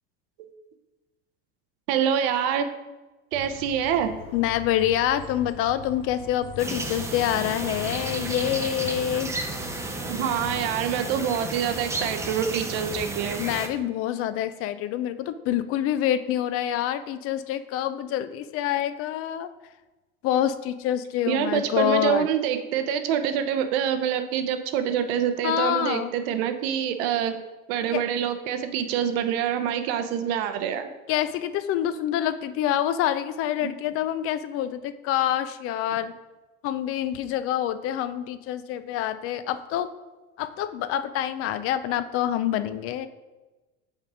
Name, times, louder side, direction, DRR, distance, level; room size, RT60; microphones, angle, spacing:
voice 1, 1.9-2.7 3.3-4.1 10.0-13.4 21.3-27.4 27.7-30.9, right 9 dB, 75° right, 8 dB, 0.7 m, -26 dB
sound 1, 3.3-10.6, left 6 dB, 70° left, 0.8 m, -42 dB
voice 2, 4.3-9.3 13.4-19.5 20.2-22.3 25.4-26.1 27.9-28.0 31.1-36.1 36.6-39.9 40.4-43.1, left 11 dB, 50° left, 12 dB, 0.4 m, -26 dB
sound 2, 6.6-13.7, right 2 dB, 10° right, 0.5 m, -33 dB
5.3 x 3.6 x 4.9 m, 1.1 s
supercardioid pair, 115°, 30 cm